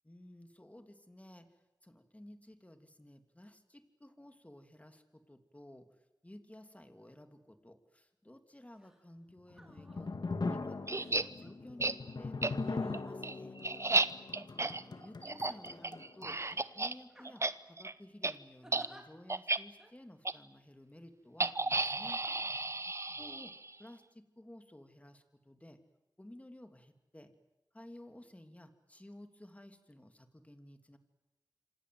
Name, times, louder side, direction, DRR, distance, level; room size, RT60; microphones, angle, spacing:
voice 1, 0.0-5.9 6.2-13.6 14.3-16.4 16.7-22.2 23.2-23.5 23.8-25.8 26.2-27.3 27.7-31.0, left 1 dB, 20° left, 7 dB, 3.0 m, -54 dB
sound 1, 8.8-9.0 9.5-10.2 10.9-11.5 12.5-14.5 15.3-16.0 16.5-16.7 17.1-17.7 18.6-19.0 19.8-19.9, equal, 10° right, 4.7 m, -57 dB
sound 2, 9.4-16.6, left 3 dB, 75° left, 1.8 m, -40 dB
sound 3, 10.9-11.2 11.8-11.9 12.4-12.5 12.9-16.9 17.2-17.5 17.8-17.9 18.2-18.3 18.7-18.9 19.3-19.6 20.2-20.3 21.4-23.7, right 3 dB, 40° right, 0.9 m, -33 dB
26.5 x 26.5 x 7.9 m, 0.97 s
wide cardioid pair, 55°, 7 cm